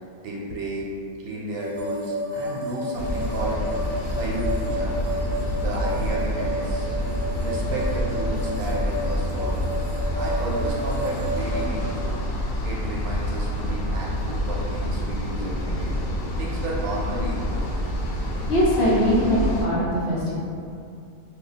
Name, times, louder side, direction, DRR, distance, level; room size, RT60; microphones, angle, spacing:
voice 1, 0.2-0.9 1.2-3.6 4.2-4.9 5.5-6.9 7.3-9.5 10.2-12.1 12.6-15.9 16.4-17.7, right 1 dB, 85° right, -3 dB, 1.1 m, -32 dB
sound 1, 1.6-11.7, right 1 dB, 65° right, 0.8 m, -31 dB
sound 2, 2.9-19.6, equal, 85° left, 1.1 m, -27 dB
voice 2, 18.5-20.3, equal, 55° left, -9 dB, 1.0 m, -21 dB
2.6 x 2.3 x 3.8 m, 2.4 s
omnidirectional pair, 1.5 m